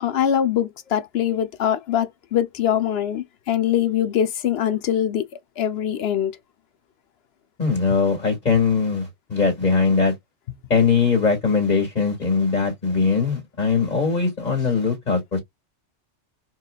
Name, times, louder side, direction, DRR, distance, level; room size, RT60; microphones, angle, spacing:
voice 1, 0.0-5.3 5.6-6.4, left 10 dB, 65° left, 0.9 m, -23 dB
voice 2, 7.6-10.1 10.7-15.4, left 5 dB, 40° left, 1.8 m, -21 dB
4.4 x 3.0 x 2.3 m
omnidirectional pair, 1.2 m